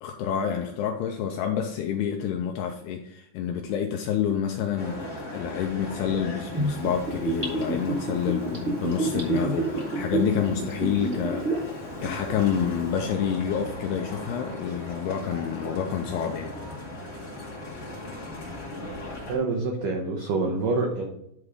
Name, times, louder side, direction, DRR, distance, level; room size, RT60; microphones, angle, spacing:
voice 1, 0.0-16.5, left 8 dB, 90° left, 4 dB, 2.3 m, -28 dB
sound 1, 4.8-19.4, left 1 dB, 25° left, 1.3 m, -38 dB
Gurgling / Bathtub (filling or washing), 6.5-11.7 12.0-12.1, right 2 dB, 65° right, 0.7 m, -28 dB
voice 2, 19.3-21.0, right 3 dB, 85° right, 1 dB, 1.8 m, -26 dB
11.0 x 4.9 x 3.6 m, 0.78 s
omnidirectional pair, 5.2 m